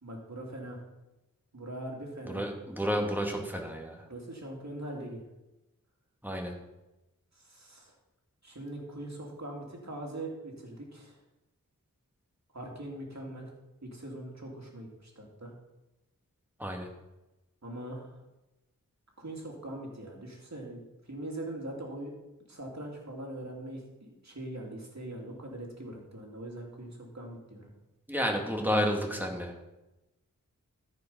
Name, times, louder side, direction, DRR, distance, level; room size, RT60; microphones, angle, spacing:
voice 1, 0.0-0.8 1.5-2.5 4.1-5.2 7.4-7.9 8.4-11.2 12.5-13.5 13.8-15.5 17.6-18.1 19.2-22.1 22.5-27.7, right 1 dB, 50° right, -1 dB, 2.8 m, -42 dB
voice 2, 2.3-4.0 6.2-6.5 16.6-16.9 28.1-29.7, equal, 5° right, 1 dB, 2.3 m, -31 dB
13.0 x 5.3 x 5.6 m, 0.98 s
cardioid pair, 45°, 34 cm